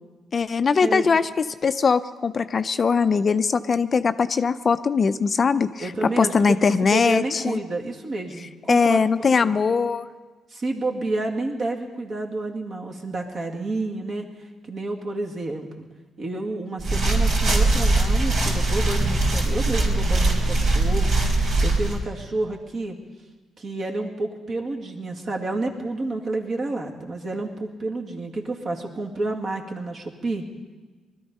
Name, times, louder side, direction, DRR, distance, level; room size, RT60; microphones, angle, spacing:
voice 1, 0.3-1.3 1.6-7.6 8.7-10.0, left 5 dB, 40° left, 11 dB, 0.5 m, -21 dB
voice 2, 5.8-6.3 6.8-9.5 10.5-14.3 14.7-15.7 16.2-23.0 23.6-30.4, right 2 dB, 50° right, 1 dB, 2.2 m, -30 dB
sound 1, 16.8-22.0, right 2 dB, 70° right, 3.8 m, -21 dB
20.5 x 13.0 x 5.4 m, 1.3 s
cardioid pair, 90°, 0 cm